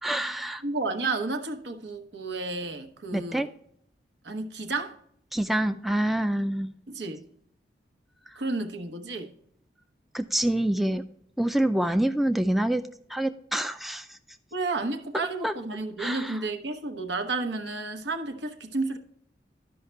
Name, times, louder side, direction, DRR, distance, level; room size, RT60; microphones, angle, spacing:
voice 1, 0.0-0.6 3.1-3.5 5.3-6.7 10.1-11.0 11.4-12.8 13.1-14.2 15.4-15.5 16.0-16.4, right 1 dB, ahead, 0.3 m, -26 dB
voice 2, 0.6-3.5 4.2-4.9 6.9-7.3 8.4-9.3 14.5-19.0, right 3 dB, 85° right, 1.1 m, -31 dB
12.5 x 5.6 x 3.3 m
head